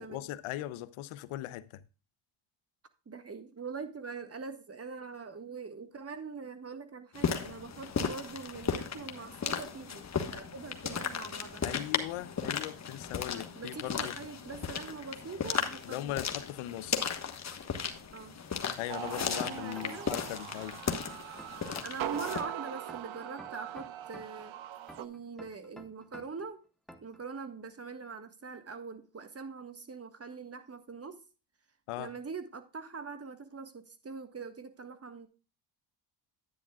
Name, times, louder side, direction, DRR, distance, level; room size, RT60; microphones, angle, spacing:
voice 1, 0.0-1.8 11.6-14.2 15.8-17.1 18.8-20.8 31.9-32.1, left 14 dB, 90° left, 0.8 m, -39 dB
voice 2, 3.0-11.7 13.2-16.3 18.1-18.4 19.0-20.1 21.8-24.6 25.0-26.6 27.0-31.2 32.0-35.3, right 4 dB, 30° right, 1.6 m, -43 dB
sound 1, 7.1-22.4, left 6 dB, 35° left, 1.3 m, -36 dB
sound 2, 18.9-25.0, right 12 dB, 70° right, 1.0 m, -41 dB
sound 3, 19.4-20.5 20.9-22.5 22.9-24.5 24.9-26.5 26.9-27.2, equal, ahead, 1.2 m, -51 dB
10.0 x 9.9 x 2.3 m
cardioid pair, 95°, 49 cm